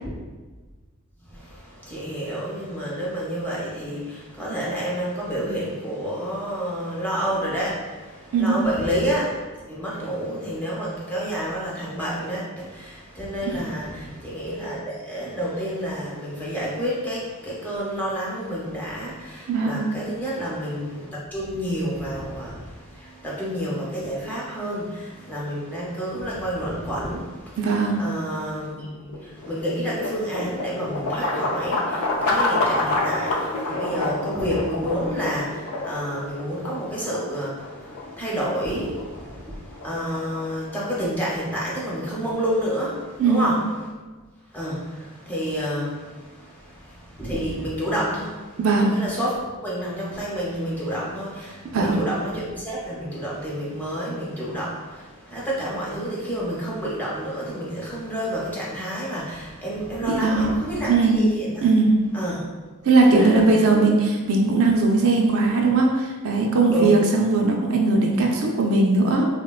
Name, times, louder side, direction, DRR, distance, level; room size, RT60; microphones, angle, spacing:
voice 1, 1.3-43.6 44.5-61.7 62.1-62.5 63.0-63.6 66.7-66.9, equal, 10° left, -6 dB, 0.7 m, -29 dB
voice 2, 19.5-19.9 27.6-28.0 43.2-43.6 48.6-49.0 51.7-52.1 60.1-60.5 60.9-61.2 61.6-62.1 62.8-69.3, right 3 dB, 65° right, 0 dB, 0.4 m, -19 dB
sound 1, 28.7-42.8, left 2 dB, 80° left, 0.4 m, -29 dB
3.6 x 2.1 x 2.3 m, 1.3 s
head